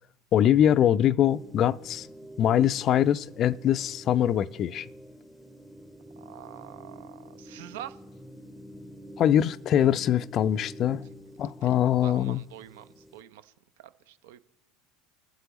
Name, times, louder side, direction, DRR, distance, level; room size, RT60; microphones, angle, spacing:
voice 1, 0.3-2.1 2.4-4.9 9.2-11.1 11.4-12.4, left 10 dB, 45° left, 0.3 m, -23 dB
sound 1, 1.3-13.2, equal, 5° left, 0.7 m, -47 dB
voice 2, 6.2-8.0 11.4-13.5 13.8-14.4, right 12 dB, 70° right, 0.4 m, -45 dB
21.5 x 7.7 x 3.0 m
hypercardioid pair, 75°, 0 cm